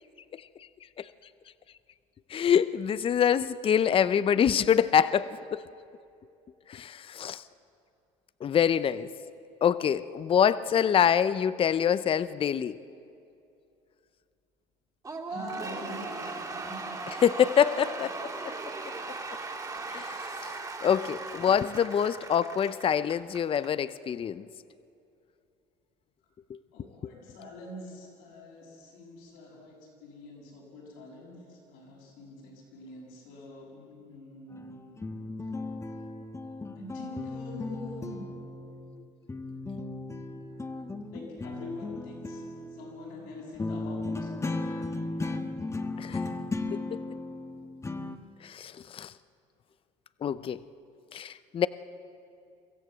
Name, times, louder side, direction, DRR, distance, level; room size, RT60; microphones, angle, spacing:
voice 1, 2.3-5.6 6.7-7.4 8.4-9.1 9.6-12.8 17.2-18.5 19.9-20.5 20.8-24.5 26.5-26.6 46.0-46.2 46.7-47.0 48.4-49.1 50.2-50.6 51.1-51.7, left 8 dB, 35° left, 16 dB, 0.6 m, -25 dB
Cheering / Applause / Crowd, 15.0-23.7, right 3 dB, 20° right, 3.1 m, -38 dB
voice 2, 15.3-16.9 17.7-17.8 19.7-19.9 26.7-35.0 36.8-38.3 40.5-40.6 41.1-44.7, left 2 dB, 80° left, -2 dB, 7.3 m, -45 dB
sound 1, 34.5-39.0 39.3-48.2, left 2 dB, 20° left, 1.3 m, -36 dB
23.5 x 14.5 x 7.8 m, 2.5 s
supercardioid pair, 80°, 16 cm